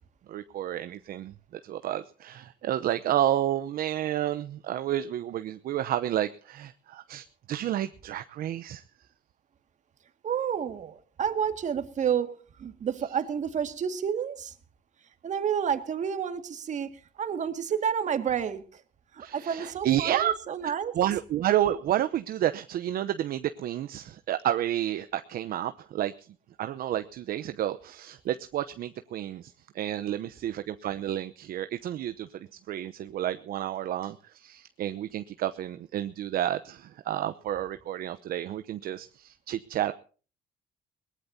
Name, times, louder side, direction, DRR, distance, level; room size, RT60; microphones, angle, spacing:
voice 1, 0.3-8.8 19.2-20.3 20.6-26.1 26.6-39.9, right 12 dB, 60° right, 10 dB, 0.8 m, -30 dB
voice 2, 10.2-14.5 15.2-18.8 19.1-20.9, right 8 dB, 45° right, 9 dB, 2.0 m, -30 dB
21.5 x 19.0 x 2.8 m, 0.39 s
cardioid pair, 110°, 17 cm